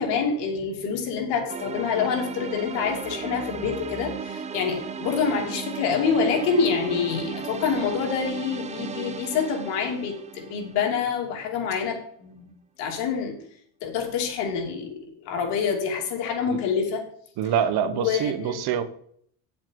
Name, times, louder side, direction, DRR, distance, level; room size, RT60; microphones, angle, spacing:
voice 1, 0.0-12.5 12.8-13.4 13.8-17.0 17.8-18.6, left 6 dB, 85° left, 1 dB, 2.9 m, -27 dB
sound 1, 1.5-11.5, right 6 dB, 20° right, 0.3 m, -36 dB
voice 2, 17.4-18.8, right 8 dB, 65° right, 12 dB, 1.1 m, -25 dB
9.4 x 7.4 x 4.6 m, 0.64 s
cardioid pair, 145°, 41 cm